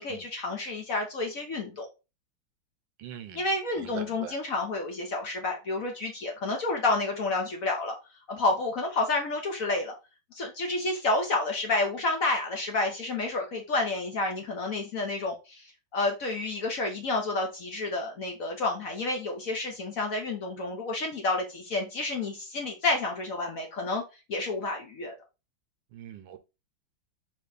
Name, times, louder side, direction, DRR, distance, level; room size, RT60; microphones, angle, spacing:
voice 1, 0.0-1.9 3.3-8.0 8.3-9.9 10.3-15.7 15.9-24.0 24.3-25.1, left 2 dB, 55° left, 1.1 m, -30 dB
voice 2, 3.0-3.4 3.8-4.3 25.9-26.4, right 9 dB, 75° right, 1.3 m, -42 dB
4.4 x 3.0 x 3.8 m
omnidirectional pair, 2.2 m